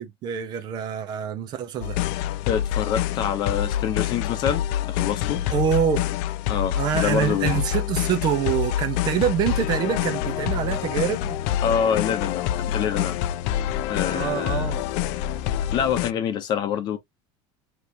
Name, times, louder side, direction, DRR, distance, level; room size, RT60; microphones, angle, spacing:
voice 1, 0.0-2.0 5.5-6.1 6.7-11.4 14.1-14.8, right 9 dB, 30° right, 0.5 m, -25 dB
sound 1, 1.8-16.1, left 11 dB, 55° left, 0.4 m, -26 dB
voice 2, 2.5-5.5 6.5-7.6 11.6-13.2 13.9-14.7 15.5-17.0, left 8 dB, 35° left, 0.8 m, -26 dB
4.8 x 3.0 x 2.6 m
cardioid pair, 170°, 13 cm